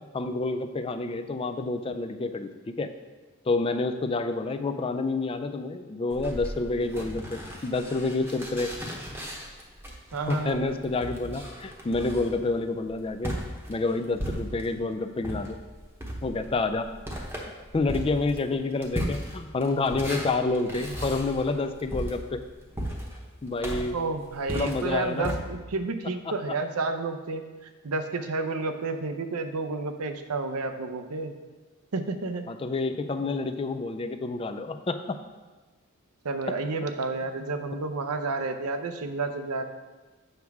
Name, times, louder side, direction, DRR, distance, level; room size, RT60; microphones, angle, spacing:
voice 1, 0.1-2.9 3.4-8.7 10.3-13.3 13.7-15.6 16.2-16.9 17.7-22.4 23.4-24.0 24.5-25.4 32.5-35.2 36.5-36.6, left 3 dB, 25° left, 8 dB, 0.3 m, -28 dB
sound 1, 6.1-14.8 15.2-25.4, equal, 10° right, 0.9 m, -36 dB
voice 2, 10.1-10.8 23.9-31.4 31.9-32.5 36.2-39.6, right 3 dB, 90° right, 7 dB, 0.6 m, -31 dB
7.9 x 5.9 x 3.5 m, 1.3 s
head